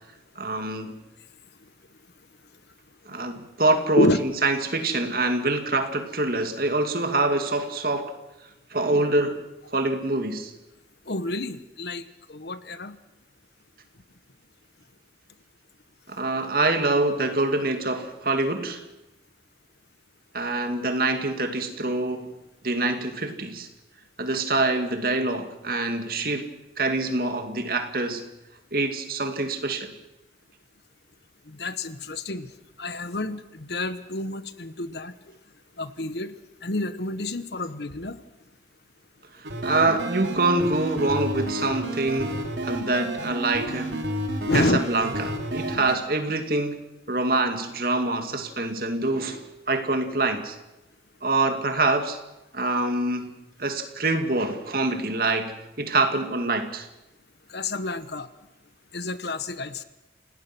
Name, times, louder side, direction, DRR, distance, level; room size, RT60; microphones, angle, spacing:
voice 1, 0.4-0.9 3.1-8.1 8.7-9.4 9.7-10.5 16.1-18.8 20.3-22.3 22.6-23.7 24.2-26.5 26.8-28.2 28.7-29.9 39.4-44.0 44.5-46.8 47.1-50.6 51.2-52.2 52.5-53.3 53.6-56.9, right 2 dB, 50° right, 7 dB, 2.3 m, -25 dB
voice 2, 11.1-12.0 12.3-13.0 31.5-32.5 32.8-35.1 35.8-36.3 36.6-38.2 44.4-44.8 57.5-58.3 58.9-59.8, left 2 dB, 65° left, 13 dB, 1.2 m, -28 dB
sound 1, 39.4-46.0, right 1 dB, 80° right, 3.1 m, -31 dB
28.0 x 18.5 x 6.2 m, 0.96 s
head